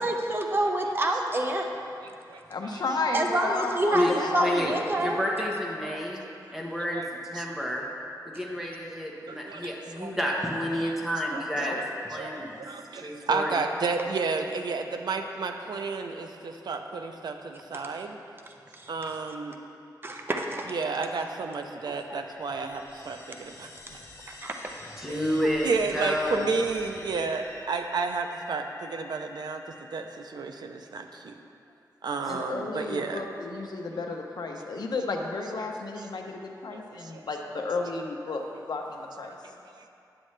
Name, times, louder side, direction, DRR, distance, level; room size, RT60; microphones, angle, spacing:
voice 1, 0.0-1.7 3.1-5.2 18.5-19.1 20.0-20.7 22.1-22.2 24.3-24.9, right 1 dB, 30° right, 3 dB, 0.7 m, -28 dB
voice 2, 2.5-4.5 11.6-11.8 32.3-39.4, left 3 dB, 70° left, 2 dB, 0.8 m, -32 dB
voice 3, 3.9-6.2 6.5-7.8 8.2-12.6 12.9-13.6 25.0-26.5, equal, 5° right, -3 dB, 1.2 m, -30 dB
voice 4, 9.3-10.1 10.7-10.9 11.3-11.4 11.8-11.9 12.1-18.2 18.9-19.6 20.7-24.0 25.1-31.3 32.0-33.2 36.0-36.1 36.7-37.2 38.3-38.4 39.7-39.9, right 4 dB, 75° right, 5 dB, 0.6 m, -32 dB
sound 1, 21.3-30.6, left 2 dB, 40° left, 0.9 m, -48 dB
9.7 x 7.4 x 3.2 m, 2.6 s
wide cardioid pair, 115°, 7 cm